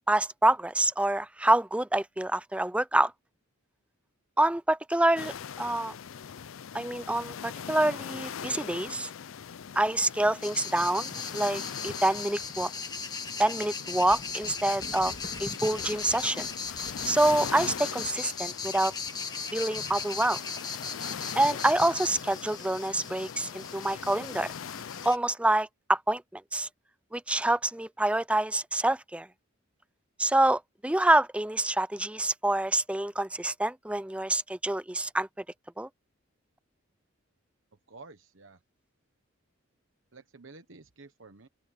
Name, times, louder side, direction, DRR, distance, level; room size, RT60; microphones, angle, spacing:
voice 1, 0.1-3.1 4.4-5.9 6.7-9.1 9.7-12.7 13.4-15.1 15.4-16.5 17.1-18.9 19.5-20.4 21.4-24.5 25.0-26.7 27.1-29.3 30.2-35.3 35.8-35.9, right 1 dB, 5° right, 0.4 m, -27 dB
sound 1, 5.2-25.1, left 7 dB, 75° left, 0.5 m, -41 dB
sound 2, 10.4-25.2, left 5 dB, 20° left, 1.6 m, -38 dB
sound 3, 13.8-18.2 19.1-20.4 20.8-21.4 21.8-23.7, left 1 dB, 50° left, 2.7 m, -49 dB
voice 2, 37.9-38.6 40.1-41.5, right 3 dB, 65° right, 1.2 m, -51 dB
open air
head